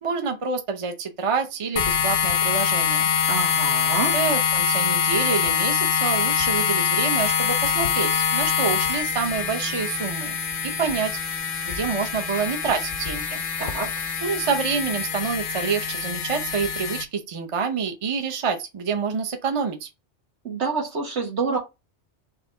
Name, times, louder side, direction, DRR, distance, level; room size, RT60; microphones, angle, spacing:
voice 1, 0.0-3.0 3.9-10.4 10.6-11.1 11.6-13.4 14.2-19.9, right 5 dB, 35° right, 0.6 m, -27 dB
sound 1, 1.8-17.0, left 7 dB, 55° left, 0.7 m, -24 dB
voice 2, 3.3-4.1 13.6-14.0 20.4-21.6, right 4 dB, 75° right, 1.7 m, -27 dB
4.2 x 2.8 x 3.8 m
omnidirectional pair, 1.2 m